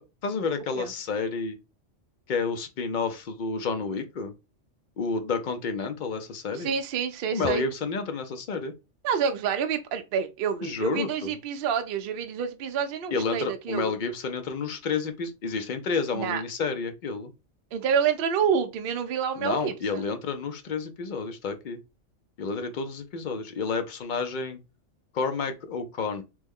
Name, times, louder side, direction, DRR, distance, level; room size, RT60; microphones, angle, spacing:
voice 1, 0.0-1.6 2.3-4.3 5.0-6.7 7.3-8.7 10.6-11.3 13.1-17.3 19.4-21.8 22.4-24.6 25.1-26.2, left 4 dB, 60° left, 0.5 m, -30 dB
voice 2, 6.5-7.6 9.0-13.9 16.1-16.4 17.7-20.1, right 7 dB, 60° right, 0.6 m, -28 dB
3.0 x 2.1 x 3.4 m
omnidirectional pair, 1.2 m